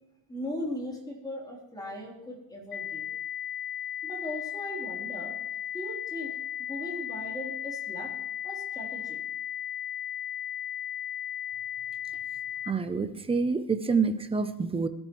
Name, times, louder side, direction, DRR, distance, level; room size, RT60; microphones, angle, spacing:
voice 1, 0.3-3.1 4.0-5.3 5.7-6.3 6.6-8.1 8.4-9.2, left 1 dB, 10° left, -2 dB, 3.4 m, -38 dB
sound 1, 2.7-12.7, left 10 dB, 45° left, 1.8 m, -36 dB
voice 2, 12.7-14.9, right 4 dB, 10° right, 9 dB, 0.6 m, -27 dB
22.0 x 13.5 x 3.1 m, 0.95 s
cardioid pair, 165°, 49 cm